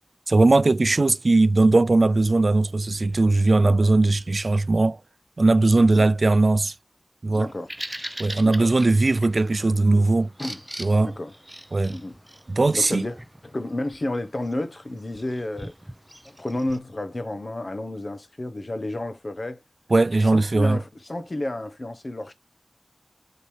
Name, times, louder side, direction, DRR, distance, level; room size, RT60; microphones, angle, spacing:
voice 1, 0.3-5.0 5.4-6.7 7.2-7.5 8.2-10.3 10.8-11.1 11.7-12.0 12.5-13.1 19.9-20.8, right 2 dB, 75° right, 0.4 m, -19 dB
voice 2, 5.8-6.1 7.3-7.7 8.4-8.7 10.4-10.6 11.0-11.3 11.9-12.1 12.7-13.2 13.4-15.7 16.2-19.6 20.3-22.3, left 1 dB, 55° left, 1.1 m, -31 dB
Bird vocalization bird call bird song, 7.4-16.8, right 1 dB, 15° right, 0.6 m, -41 dB
8.5 x 4.1 x 3.3 m
wide cardioid pair, 50°, 0 cm